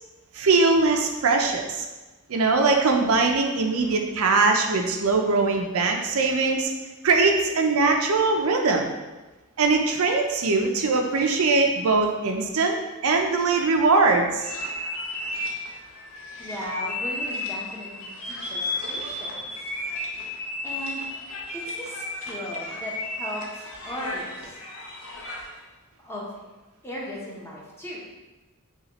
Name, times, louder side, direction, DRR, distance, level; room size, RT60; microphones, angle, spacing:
voice 1, 0.3-1.9 2.3-6.7 7.0-8.9 9.6-14.5, right 3 dB, 75° right, 3 dB, 0.5 m, -21 dB
sound 1, 14.4-25.6, left 2 dB, 75° left, 0.8 m, -33 dB
voice 2, 16.4-19.5 20.6-21.0 21.5-24.6 26.0-26.3 26.8-28.0, equal, 10° left, -5 dB, 0.9 m, -37 dB
5.6 x 2.4 x 3.0 m, 1.1 s
head